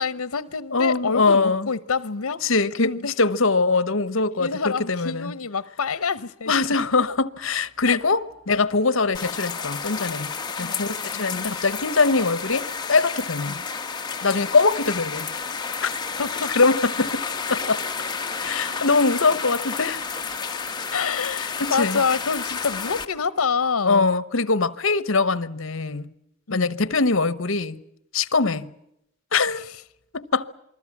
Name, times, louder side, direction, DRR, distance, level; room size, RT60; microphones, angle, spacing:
voice 1, 0.0-2.4 2.8-3.1 4.3-6.5 7.8-8.0 10.6-10.8 11.1-11.4 13.5-13.6 16.2-16.5 20.9-24.1 26.5-26.7 28.5-28.6 29.6-29.7, left 5 dB, 85° left, 0.8 m, -27 dB
voice 2, 0.7-1.7 2.4-5.3 6.5-10.3 10.6-13.6 14.2-15.3 15.8-15.9 16.6-17.2 17.5-17.8 18.4-20.0 21.6-22.0 23.8-26.1 26.5-27.8 28.1-28.7 29.3-29.7 30.1-30.5, left 3 dB, 65° left, 1.1 m, -22 dB
sound 1, 9.1-23.0, left 5 dB, 20° left, 1.5 m, -31 dB
28.0 x 21.0 x 7.3 m
head